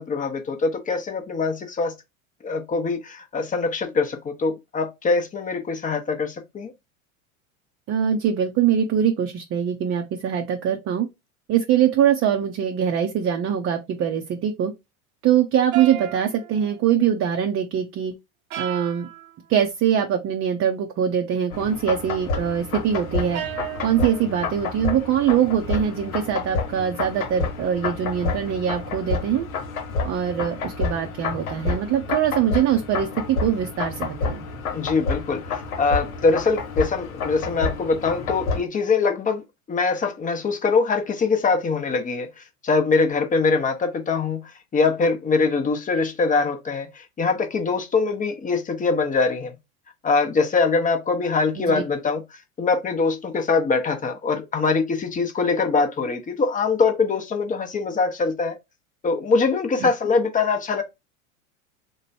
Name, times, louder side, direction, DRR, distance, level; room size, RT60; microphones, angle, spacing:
voice 1, 0.0-1.9 2.4-6.7 34.7-49.6 50.0-52.2 52.6-58.6 59.0-60.8, left 4 dB, 20° left, 0.7 m, -23 dB
voice 2, 7.9-11.1 11.5-14.7 15.2-18.1 18.6-19.1 19.5-23.4 23.8-29.5 30.0-34.5 51.6-51.8 59.8-59.9, right 9 dB, 35° right, 0.6 m, -23 dB
sound 1, 15.7-16.9 18.5-19.4 23.3-24.3, right 12 dB, 75° right, 0.8 m, -34 dB
sound 2, 21.5-38.6, left 4 dB, 75° left, 1.0 m, -29 dB
3.0 x 2.1 x 4.1 m
hypercardioid pair, 90°, 42 cm